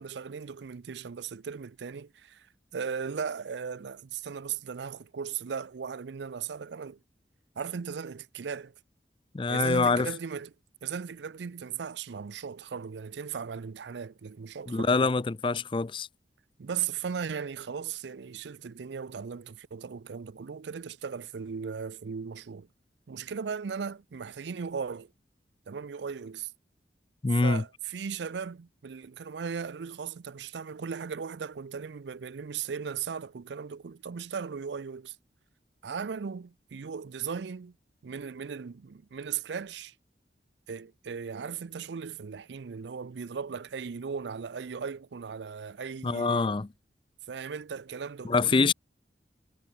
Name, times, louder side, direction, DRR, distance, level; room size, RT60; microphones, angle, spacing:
voice 1, 0.0-2.5 2.7-7.0 7.6-8.7 9.5-10.5 10.8-15.1 16.6-22.7 23.1-25.1 25.7-26.5 27.4-35.2 35.8-37.7 38.0-39.9 40.7-46.6 47.3-48.7, right 6 dB, 80° right, 0.5 m, -37 dB
voice 2, 9.3-10.1 14.7-16.1 27.2-27.6 46.0-46.7 48.2-48.7, left 4 dB, 30° left, 0.4 m, -25 dB
head